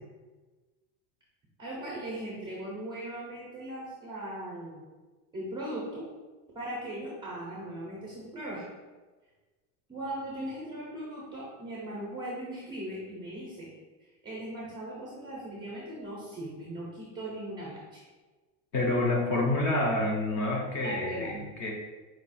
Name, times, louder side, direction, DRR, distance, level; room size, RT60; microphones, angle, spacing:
voice 1, 1.6-4.9 5.3-6.0 6.5-8.7 9.9-13.7 14.0-18.0 20.8-21.3, right 1 dB, 10° right, -6 dB, 0.5 m, -39 dB
voice 2, 18.7-21.7, left 2 dB, 35° left, -1 dB, 0.6 m, -28 dB
4.7 x 2.3 x 4.1 m, 1.3 s
supercardioid pair, 175°, 43 cm